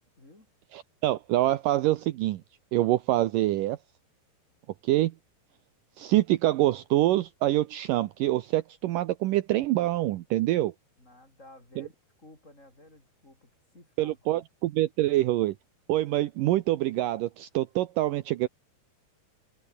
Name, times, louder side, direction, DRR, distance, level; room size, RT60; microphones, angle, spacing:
voice 1, 0.2-0.5 11.0-14.4 15.0-15.1, left 1 dB, 15° left, 5.2 m, -54 dB
voice 2, 0.7-2.4 2.7-3.8 4.8-5.1 6.0-10.7 11.8-11.9 14.0-15.6 15.9-18.5, right 15 dB, 85° right, 1.9 m, -25 dB
omnidirectional pair, 4.8 m